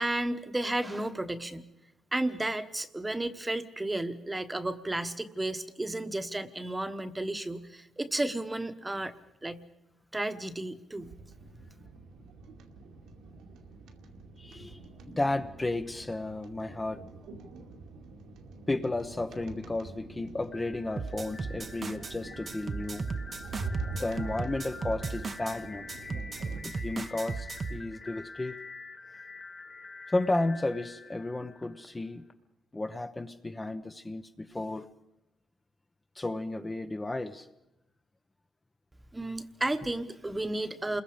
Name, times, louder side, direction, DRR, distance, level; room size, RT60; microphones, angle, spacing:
voice 1, 0.0-1.6 2.1-9.1 9.4-9.6 10.1-11.1 39.1-41.0, right 1 dB, 15° right, 10 dB, 1.2 m, -33 dB
sound 1, 11.0-26.6, right 3 dB, 85° right, 2.4 m, -45 dB
voice 2, 14.4-14.8 15.1-17.0 18.7-23.1 23.9-25.9 26.6-28.6 30.1-32.2 32.7-34.9 36.2-37.5, left 2 dB, 20° left, 7 dB, 0.8 m, -33 dB
sound 2, 20.5-32.3, left 4 dB, 35° left, 2.1 m, -47 dB
sound 3, 21.0-22.1 22.5-25.6 25.9-27.8, right 4 dB, 35° right, 0.9 m, -36 dB
28.5 x 21.5 x 5.1 m, 0.92 s
cardioid pair, 90°, 0 cm